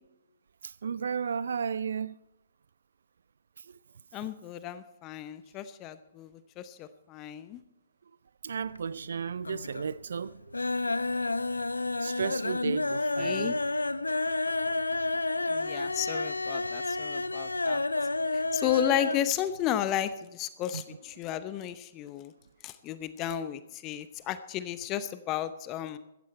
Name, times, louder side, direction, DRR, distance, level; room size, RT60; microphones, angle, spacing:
voice 1, 0.6-2.2 8.4-10.5 12.0-13.6 20.7-20.8, right 6 dB, 65° right, 0.4 m, -33 dB
voice 2, 4.1-7.6 12.7-12.8 13.2-13.6 15.5-17.8 18.3-22.3 22.6-26.0, left 11 dB, 30° left, 0.8 m, -33 dB
sound 1, 8.5-9.1 9.4-9.9 10.2-19.3 19.6-19.7 20.0-20.1, left 2 dB, 85° left, 0.6 m, -30 dB
15.5 x 14.0 x 4.3 m
figure-of-eight pair, 120°, 0 cm